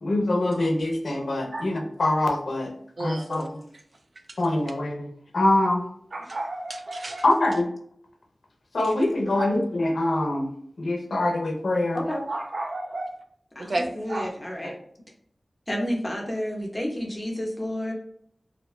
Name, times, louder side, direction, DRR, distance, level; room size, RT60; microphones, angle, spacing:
voice 1, 0.0-2.7 3.0-3.6 4.4-5.8 7.2-7.7 8.7-10.5 10.8-12.0 14.6-14.7, left 2 dB, 80° left, 3 dB, 0.5 m, -24 dB
voice 2, 3.0-3.5 4.3-4.4 6.1-7.2 8.8-9.1 9.4-9.5 12.3-13.2 13.6-14.3, right 2 dB, 60° right, 6 dB, 0.4 m, -32 dB
voice 3, 13.5-14.7 15.7-17.9, equal, 25° left, -1 dB, 0.8 m, -30 dB
2.4 x 2.2 x 3.0 m, 0.63 s
wide cardioid pair, 50°, 0 cm